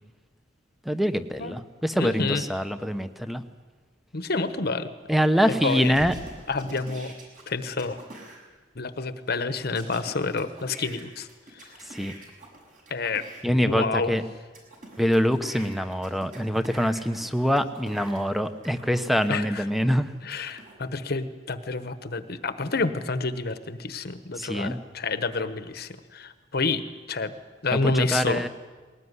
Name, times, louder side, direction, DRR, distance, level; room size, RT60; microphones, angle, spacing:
voice 1, 0.8-3.4 5.1-6.1 11.9-12.1 13.4-14.2 15.0-20.1 24.4-24.8 27.8-28.5, equal, ahead, 9 dB, 1.0 m, -24 dB
voice 2, 2.0-2.4 4.1-4.9 5.6-5.9 6.5-7.1 7.5-8.0 8.7-11.3 11.6-11.7 12.9-13.2 13.5-14.1 19.3-19.6 20.2-27.3 27.6-28.4, left 3 dB, 55° left, 11 dB, 1.2 m, -29 dB
sound 1, 5.5-8.4 9.7-13.4 14.0-19.3 19.9-20.7, right 2 dB, 45° right, 6.2 m, -46 dB
Bass drum, 5.9-7.4, left 1 dB, 60° right, 6.8 m, -44 dB
20.5 x 19.0 x 9.7 m, 1.4 s
head